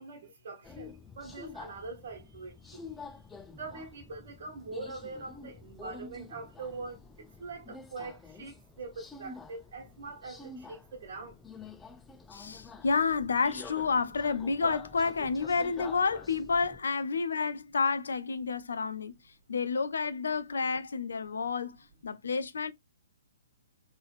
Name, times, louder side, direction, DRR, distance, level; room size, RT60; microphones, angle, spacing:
voice 1, 0.0-2.8 3.6-11.3, right 3 dB, 50° right, 1.2 m, -43 dB
Subway metro underground, 0.6-16.8, left 4 dB, 10° left, 0.4 m, -48 dB
voice 2, 12.3-19.2 19.5-21.8 22.0-22.7, left 5 dB, 65° left, 0.5 m, -30 dB
3.9 x 3.2 x 2.4 m
figure-of-eight pair, 125°, 0 cm